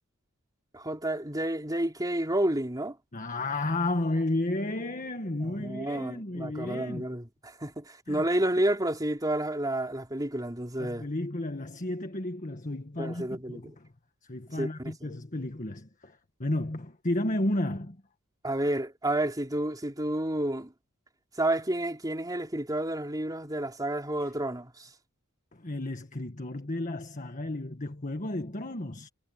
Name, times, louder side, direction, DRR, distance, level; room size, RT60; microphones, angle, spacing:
voice 1, 0.7-3.0 5.4-11.1 13.0-13.6 14.5-15.1 18.4-20.7 21.4-24.9, right 1 dB, 15° right, 4.0 m, -30 dB
voice 2, 3.1-7.0 8.1-8.3 10.8-13.9 14.2-18.0 24.2-24.3 25.5-29.1, left 1 dB, 35° left, 1.6 m, -32 dB
head